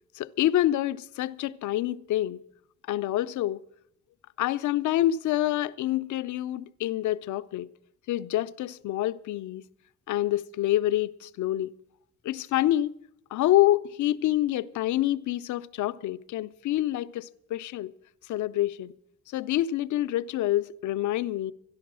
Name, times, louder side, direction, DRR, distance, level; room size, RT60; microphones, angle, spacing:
voice 1, 0.1-2.4 2.9-3.6 4.4-7.7 8.1-9.6 10.1-11.7 12.2-13.0 13.3-17.9 18.3-18.9 19.3-21.5, left 14 dB, 75° left, 0.6 m, -27 dB
13.0 x 11.0 x 6.1 m
cardioid pair, 90°, 30 cm